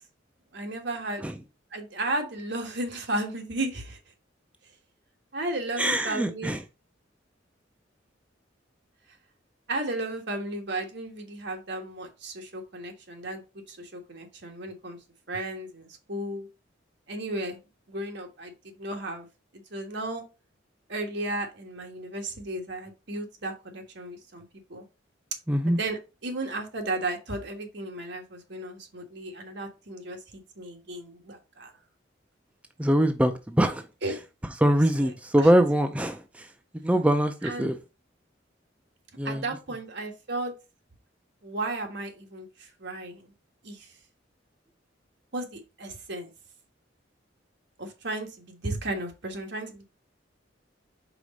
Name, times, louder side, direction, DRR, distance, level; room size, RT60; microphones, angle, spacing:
voice 1, 0.5-1.2 1.7-4.0 5.3-6.5 9.7-13.4 13.7-15.0 15.3-16.5 17.1-17.6 17.9-19.3 19.7-20.2 20.9-24.4 24.7-24.8 25.7-31.7 34.0-34.2 35.0-35.1 35.4-35.5 37.4-37.7 39.2-40.5 41.4-43.3 43.6-43.9 45.3-46.3 47.8-49.9, right 2 dB, 65° right, 3 dB, 1.6 m, -34 dB
voice 2, 5.8-6.6 25.5-25.8 32.8-33.8 34.6-36.5 36.8-37.8 39.2-39.4, right 1 dB, 5° right, 6 dB, 0.4 m, -23 dB
4.9 x 4.0 x 5.2 m, 0.28 s
head